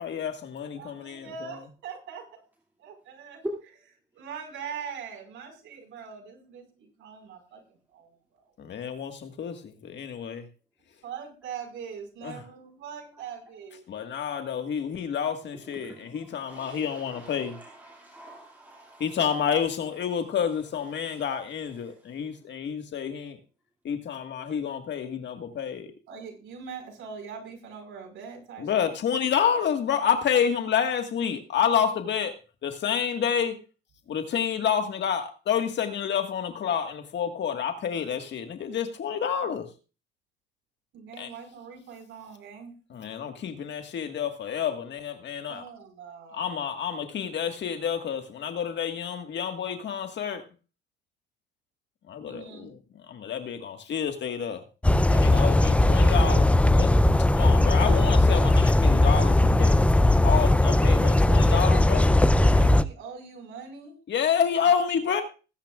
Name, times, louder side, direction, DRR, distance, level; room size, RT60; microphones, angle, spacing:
voice 1, 0.0-1.5 8.6-10.5 12.2-12.4 13.9-17.6 19.0-23.4 23.8-25.9 28.6-32.3 32.6-33.6 34.1-39.7 41.2-41.3 42.9-45.6 46.3-50.4 52.1-54.6 55.1-56.5 56.8-56.9 57.3-59.8 60.2-62.1 64.1-65.2, left 8 dB, 65° left, 1.7 m, -29 dB
voice 2, 0.8-2.2 2.8-3.4 4.1-8.2 11.0-13.8 26.1-29.0 40.9-42.7 45.5-46.5 52.2-52.7 61.8-64.0, right 6 dB, 80° right, 4.8 m, -42 dB
voice 3, 15.7-19.2, equal, 10° right, 2.4 m, -42 dB
sound 1, 54.8-62.8, left 1 dB, 5° left, 0.5 m, -19 dB
20.5 x 10.0 x 2.4 m
cardioid pair, 90°, 20 cm